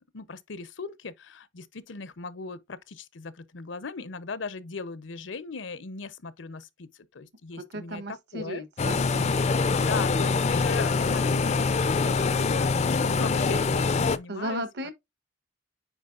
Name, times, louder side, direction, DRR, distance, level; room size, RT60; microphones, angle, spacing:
voice 1, 0.1-8.0 8.3-8.6 9.4-14.9, left 4 dB, 75° left, 0.7 m, -38 dB
voice 2, 7.6-9.3 14.3-14.9, right 1 dB, 60° right, 1.2 m, -35 dB
sound 1, 8.8-14.2, left 4 dB, 35° left, 0.4 m, -24 dB
9.0 x 4.6 x 2.5 m
head